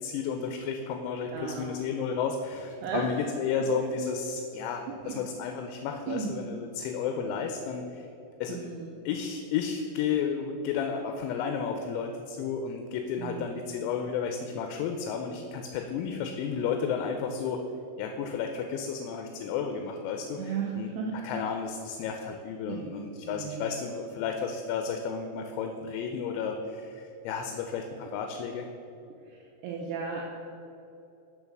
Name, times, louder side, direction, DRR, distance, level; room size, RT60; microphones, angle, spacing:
voice 1, 0.0-8.1 8.4-8.7 9.1-17.6 18.0-20.9 21.2-28.7, left 6 dB, 85° left, 4 dB, 2.8 m, -32 dB
voice 2, 1.3-1.7 2.8-3.2 4.9-5.3 6.1-6.3 8.5-9.0 13.2-13.6 20.4-21.2 22.7-22.9 23.2-23.7 29.3-30.2, right 6 dB, 90° right, -1 dB, 2.3 m, -35 dB
6.3 x 5.4 x 5.9 m, 2.8 s
omnidirectional pair, 5.4 m